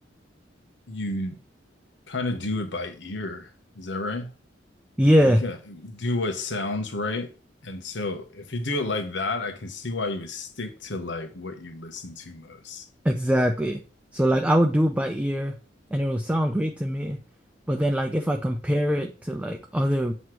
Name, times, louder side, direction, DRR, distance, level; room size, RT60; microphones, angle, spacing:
voice 1, 0.9-1.4 2.1-4.3 5.2-7.3 7.6-12.9, left 2 dB, 75° left, 1.1 m, -31 dB
voice 2, 5.0-5.4 13.0-13.8 14.1-15.6 15.9-17.2 17.7-20.1, equal, 5° right, 0.5 m, -23 dB
7.8 x 3.1 x 4.6 m
head